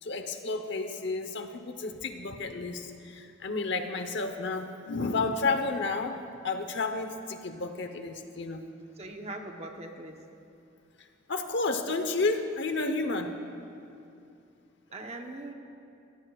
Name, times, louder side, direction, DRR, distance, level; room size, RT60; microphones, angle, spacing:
voice 1, 0.0-8.6 11.3-13.3, left 3 dB, 60° left, 7 dB, 1.0 m, -31 dB
voice 2, 9.0-10.2 14.9-15.5, right 2 dB, 35° right, 3 dB, 1.0 m, -40 dB
24.0 x 16.0 x 2.4 m, 2.7 s
head